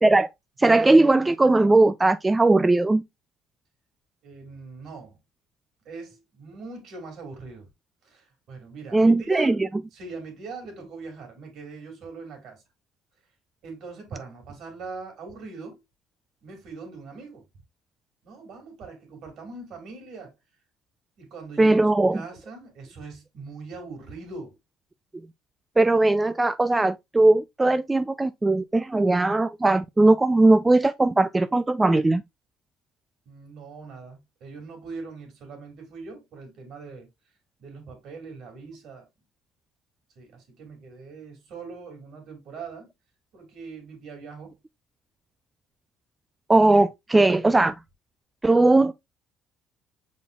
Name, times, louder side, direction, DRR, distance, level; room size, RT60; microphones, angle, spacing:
voice 1, 0.6-3.0 8.9-9.5 21.6-22.2 25.8-32.2 46.5-47.7 48.4-48.9, right 2 dB, 15° right, 0.3 m, -19 dB
voice 2, 4.2-5.2 5.8-7.7 8.0-9.6 9.9-12.6 13.6-15.8 16.4-17.5 18.2-20.3 21.2-21.9 22.1-24.6 33.3-37.1 37.6-39.1 40.2-42.9 43.3-44.5, right 4 dB, 65° right, 2.5 m, -41 dB
5.5 x 4.2 x 2.3 m
supercardioid pair, 70°, 0 cm